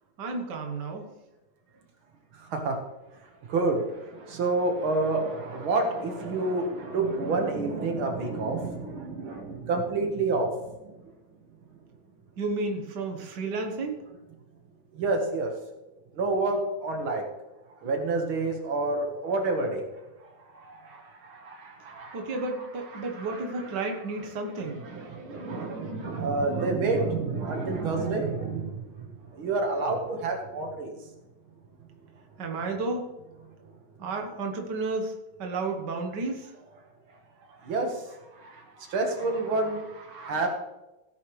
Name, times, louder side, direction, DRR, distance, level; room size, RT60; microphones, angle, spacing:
voice 1, 0.2-1.1 12.4-14.0 22.1-24.9 32.4-33.1 34.0-36.5, right 3 dB, 60° right, 3 dB, 2.0 m, -32 dB
voice 2, 2.3-2.8 3.5-10.9 14.9-15.5 16.1-17.2 17.8-19.8 20.2-22.5 22.9-23.8 24.8-30.9 37.5-40.5, right 3 dB, 85° right, 3 dB, 2.5 m, -29 dB
16.5 x 9.6 x 3.3 m, 0.99 s
omnidirectional pair, 2.2 m